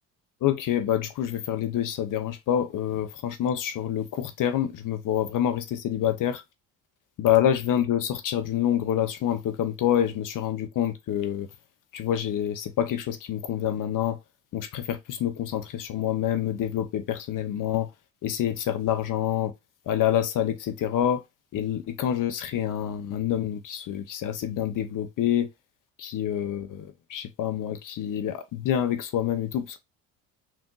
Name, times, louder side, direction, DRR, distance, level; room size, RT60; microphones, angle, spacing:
voice 1, 0.4-6.4 7.2-11.5 11.9-14.2 14.5-17.9 18.2-19.5 19.9-21.2 21.5-25.5 26.0-29.8, left 10 dB, 50° left, 0.8 m, -27 dB
3.6 x 2.6 x 3.8 m
hypercardioid pair, 60°, 41 cm